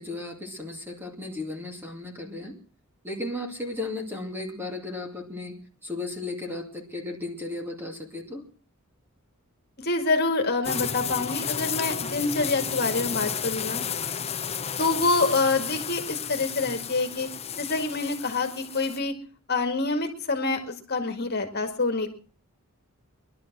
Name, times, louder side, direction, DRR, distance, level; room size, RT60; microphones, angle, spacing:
voice 1, 0.0-2.6 3.0-5.6 5.8-8.4, left 2 dB, 10° right, 3 dB, 2.5 m, -35 dB
voice 2, 9.8-13.8 14.8-17.3 17.6-19.1 19.5-22.1, left 3 dB, 45° left, 5 dB, 2.3 m, -26 dB
sound 1, 10.6-19.0, left 7 dB, 30° left, 0.8 m, -32 dB
20.0 x 12.0 x 6.1 m, 0.41 s
head